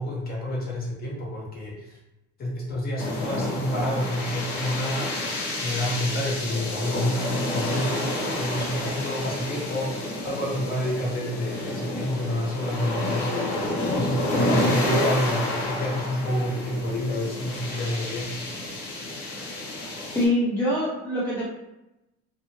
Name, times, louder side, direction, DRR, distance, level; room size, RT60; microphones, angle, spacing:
voice 1, 0.0-2.0 2.4-5.3 5.6-18.3, left 1 dB, 30° left, -3 dB, 0.8 m, -28 dB
sound 1, 3.0-20.2, left 1 dB, 80° left, 1.0 m, -29 dB
voice 2, 20.1-21.5, left 1 dB, 5° left, -7 dB, 0.4 m, -24 dB
2.7 x 2.4 x 2.8 m, 0.92 s
cardioid pair, 170°, 31 cm